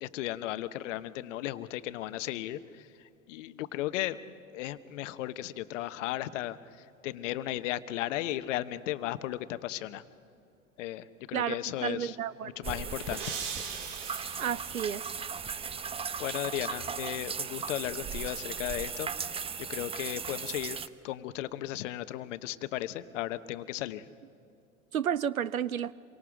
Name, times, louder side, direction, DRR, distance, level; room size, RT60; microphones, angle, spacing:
voice 1, 0.0-2.8 3.3-4.2 4.5-6.6 7.0-10.0 10.8-12.2 12.4-13.4 16.2-19.1 19.7-20.8 21.0-24.0, left 14 dB, 60° left, 1.0 m, -35 dB
voice 2, 11.3-12.5 14.4-15.0 24.9-25.9, right 9 dB, 90° right, 0.7 m, -31 dB
sound 1, 12.1-15.5, right 6 dB, 60° right, 3.1 m, -42 dB
sound 2, 12.6-20.9, right 6 dB, 15° right, 0.6 m, -37 dB
28.0 x 24.0 x 5.0 m
hypercardioid pair, 85°, 41 cm